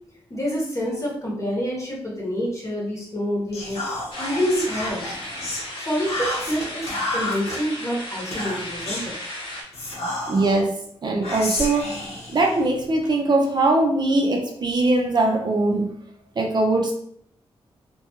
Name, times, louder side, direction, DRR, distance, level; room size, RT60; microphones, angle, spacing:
voice 1, 0.3-3.8 4.2-5.2 5.8-9.2, equal, 30° left, -3 dB, 1.0 m, -27 dB
Whispering, 3.5-5.7 6.1-7.6 8.3-9.1 9.7-10.6 11.2-13.1, left 2 dB, 85° left, 0.8 m, -30 dB
sound 1, 4.1-9.6, left 1 dB, 55° left, 0.8 m, -35 dB
voice 2, 10.3-10.8 11.0-11.9 12.3-15.9 16.4-16.9, right 2 dB, 45° right, 1 dB, 0.5 m, -21 dB
2.4 x 2.2 x 2.8 m, 0.66 s
cardioid pair, 70°, 10 cm